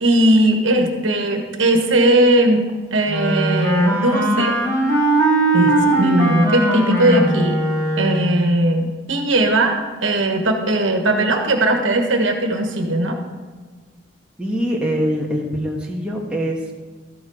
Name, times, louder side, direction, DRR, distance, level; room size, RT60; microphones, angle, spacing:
voice 1, 0.0-2.6 2.9-4.6 5.5-7.6 8.0-13.2, right 1 dB, 70° right, 3 dB, 1.4 m, -18 dB
Wind instrument woodwind instrument, 3.1-8.4, right 1 dB, 15° left, 1.3 m, -19 dB
voice 2, 14.4-16.7, equal, 5° right, -3 dB, 1.3 m, -23 dB
13.0 x 7.5 x 4.9 m, 1.4 s
head